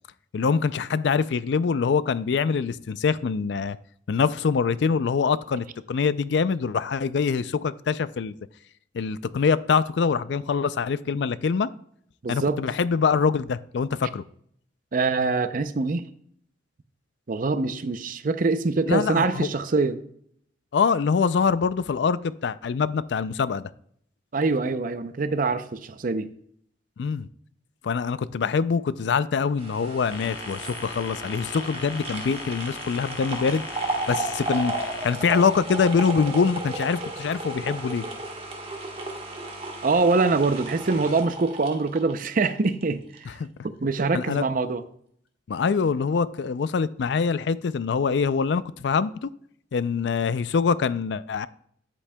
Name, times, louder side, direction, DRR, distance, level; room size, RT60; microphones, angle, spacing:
voice 1, 0.3-3.8 4.1-8.3 8.9-11.7 12.3-14.2 18.9-19.5 20.7-23.7 27.0-27.3 27.8-33.6 34.1-38.0 43.4-43.5 44.1-44.4 45.5-49.3 49.7-51.5, left 5 dB, 65° left, 0.4 m, -24 dB
voice 2, 12.2-12.6 14.9-16.0 17.3-20.0 24.3-26.3 39.8-43.3 43.8-44.8, right 3 dB, 45° right, 0.5 m, -24 dB
sound 1, 29.6-42.8 43.2-43.3, right 2 dB, 30° right, 1.3 m, -34 dB
sound 2, 30.1-35.1, left 5 dB, 90° left, 0.9 m, -39 dB
10.0 x 8.4 x 2.2 m
head